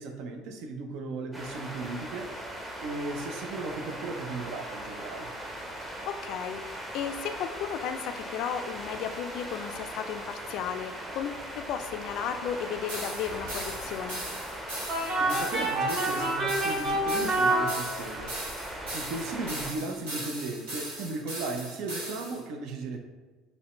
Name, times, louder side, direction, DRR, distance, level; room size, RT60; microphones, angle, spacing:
voice 1, 0.0-2.3 2.8-5.3 15.2-23.0, right 3 dB, 65° right, 5 dB, 0.5 m, -36 dB
sound 1, 1.3-19.7, right 1 dB, 15° right, 0.8 m, -39 dB
voice 2, 5.8-14.2, left 8 dB, 60° left, 8 dB, 0.3 m, -34 dB
sound 2, 12.9-22.4, right 1 dB, 80° right, 1.1 m, -39 dB
sound 3, 14.9-18.4, right 1 dB, 45° right, 0.9 m, -27 dB
5.2 x 2.1 x 3.0 m, 1.3 s
hypercardioid pair, 70°, 0 cm